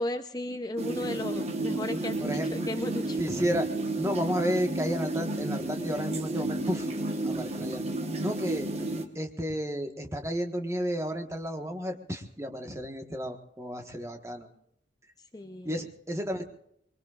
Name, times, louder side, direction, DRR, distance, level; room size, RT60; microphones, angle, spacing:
voice 1, 0.0-3.2 15.2-15.8, left 1 dB, 20° left, 7 dB, 0.6 m, -35 dB
sound 1, 0.8-9.1, right 2 dB, 35° right, 1.2 m, -32 dB
voice 2, 2.2-2.5 3.2-3.7 4.0-6.9 7.2-7.8 8.2-8.7 9.1-14.5 15.6-16.4, equal, 15° right, 4 dB, 1.4 m, -32 dB
24.5 x 22.0 x 2.5 m, 0.74 s
head